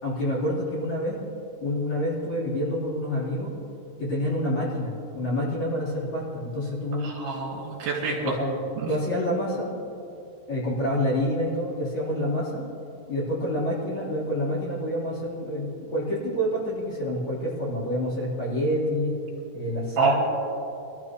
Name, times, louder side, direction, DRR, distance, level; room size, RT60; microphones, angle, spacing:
voice 1, 0.0-1.2 1.6-3.5 4.0-7.1 8.1-9.8 10.5-12.7 13.1-19.1 19.5-20.2, equal, 40° left, -8 dB, 4.7 m, -27 dB
voice 2, 7.0-8.2 8.8-8.9 20.0-20.1, right 5 dB, 65° right, -3 dB, 4.0 m, -26 dB
24.5 x 13.5 x 3.1 m, 2.8 s
omnidirectional pair, 5.4 m